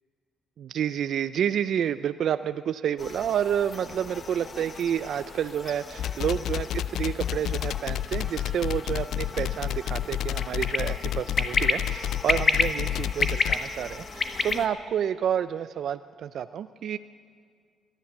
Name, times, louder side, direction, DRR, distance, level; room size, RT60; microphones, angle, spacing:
voice 1, 0.6-17.0, right 9 dB, 65° right, 13 dB, 0.3 m, -29 dB
sound 1, 3.0-14.7, left 4 dB, 40° left, 1.0 m, -32 dB
sound 2, 6.0-13.6, left 11 dB, 75° left, 0.3 m, -29 dB
17.5 x 11.5 x 7.2 m, 2.1 s
cardioid pair, 90°, 0 cm